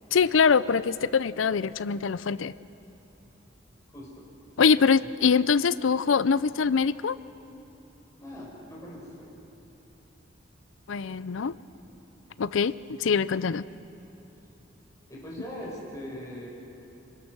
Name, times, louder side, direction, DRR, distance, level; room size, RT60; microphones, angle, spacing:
voice 1, 0.1-2.5 4.6-7.2 10.9-11.5 12.4-12.7 13.0-13.7, left 5 dB, 75° left, 17 dB, 0.5 m, -23 dB
voice 2, 3.9-4.2 8.2-9.4 15.1-16.5, equal, 15° left, -4 dB, 5.1 m, -40 dB
26.0 x 21.0 x 6.2 m, 2.9 s
head